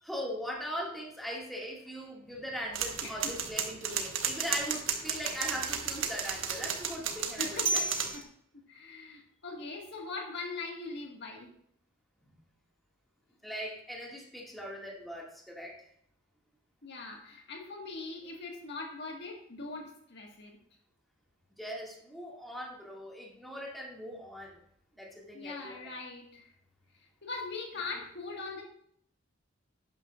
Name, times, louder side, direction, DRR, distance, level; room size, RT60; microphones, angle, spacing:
voice 1, 0.0-7.8 12.2-12.3 13.4-15.8 21.6-24.6 25.0-25.9, equal, ahead, -2 dB, 2.2 m, -40 dB
sound 1, 2.7-8.2, right 6 dB, 90° right, 1.4 m, -33 dB
voice 2, 3.0-3.3 7.4-8.3 8.7-11.5 16.8-20.6 25.3-26.5 27.2-28.6, left 3 dB, 60° left, 1 dB, 1.8 m, -41 dB
11.5 x 9.6 x 2.5 m, 0.66 s
head